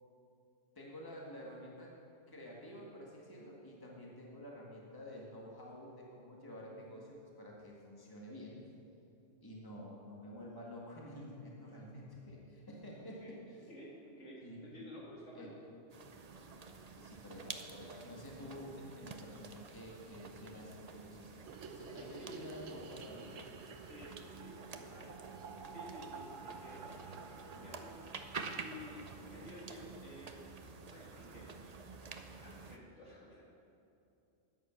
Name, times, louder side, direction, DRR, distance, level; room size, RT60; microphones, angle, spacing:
voice 1, 0.8-1.9 2.3-8.6 9.4-13.7 14.4-14.8 15.3-15.5 16.9-21.3 21.7-23.3 29.3-29.5, equal, 20° left, -3 dB, 1.9 m, -50 dB
voice 2, 13.7-15.6 22.0-22.4 23.8-25.2 25.7-27.9 28.5-29.0 29.3-30.4 30.9-31.5 32.4-33.4, left 1 dB, 70° left, -4 dB, 2.9 m, -52 dB
sound 1, 15.9-32.8, right 4 dB, 40° right, 0.7 m, -49 dB
sound 2, 21.4-29.7 29.9-30.0 30.3-30.4 30.6-30.7 31.0-31.5, right 5 dB, 90° right, 1.2 m, -52 dB
13.0 x 9.4 x 5.9 m, 2.7 s
omnidirectional pair, 1.3 m